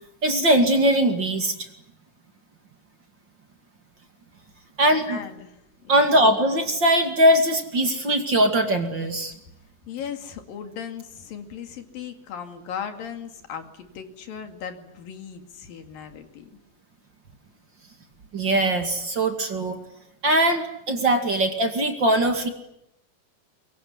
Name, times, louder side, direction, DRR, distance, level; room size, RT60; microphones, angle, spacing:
voice 1, 0.2-1.7 4.8-5.2 5.9-9.3 18.3-19.8 20.2-22.5, right 1 dB, 35° right, 5 dB, 2.6 m, -21 dB
voice 2, 5.1-5.9 9.9-16.6, left 8 dB, 85° left, 6 dB, 4.0 m, -37 dB
23.5 x 23.0 x 9.7 m, 0.84 s
omnidirectional pair, 4.0 m